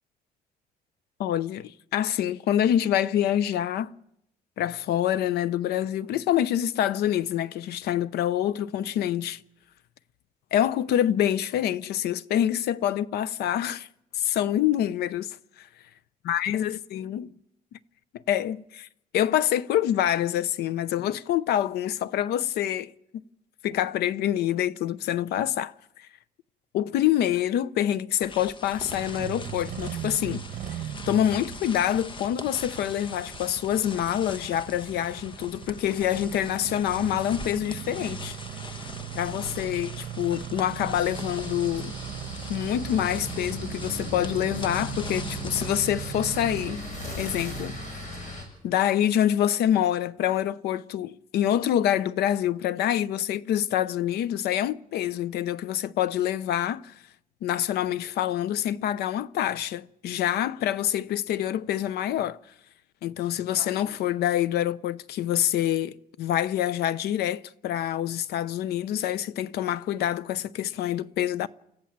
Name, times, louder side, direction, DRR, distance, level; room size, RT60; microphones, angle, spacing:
voice 1, 1.2-4.0 4.6-9.4 10.5-13.9 14.1-15.7 16.3-17.3 18.1-18.9 19.1-22.9 23.6-26.1 26.7-30.4 31.1-38.4 39.1-41.9 42.5-46.8 47.2-47.8 48.6-56.9 57.4-62.4 63.0-71.5, left 11 dB, 80° left, 0.7 m, -26 dB
sound 1, 28.2-45.8, left 3 dB, 30° left, 1.1 m, -42 dB
Engine starting, 28.6-46.7, right 12 dB, 60° right, 1.1 m, -39 dB
sound 2, 40.9-48.4, left 1 dB, 50° left, 7.2 m, -38 dB
29.5 x 15.0 x 7.4 m
cardioid pair, 140°, 16 cm